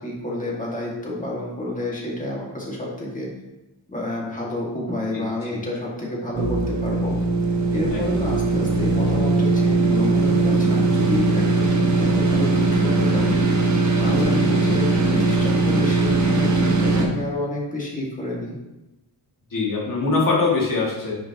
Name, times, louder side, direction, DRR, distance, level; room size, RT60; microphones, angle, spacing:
voice 1, 0.0-3.3 3.9-7.1 7.7-13.4 14.0-18.6, left 1 dB, 20° left, -4 dB, 1.9 m, -29 dB
voice 2, 5.1-5.6 7.9-8.2 14.0-14.4 19.5-21.2, left 3 dB, 50° left, -4 dB, 2.1 m, -24 dB
sound 1, 6.3-17.1, right 2 dB, 40° right, 1.2 m, -20 dB
9.6 x 6.2 x 2.9 m, 0.97 s
wide cardioid pair, 175°, 43 cm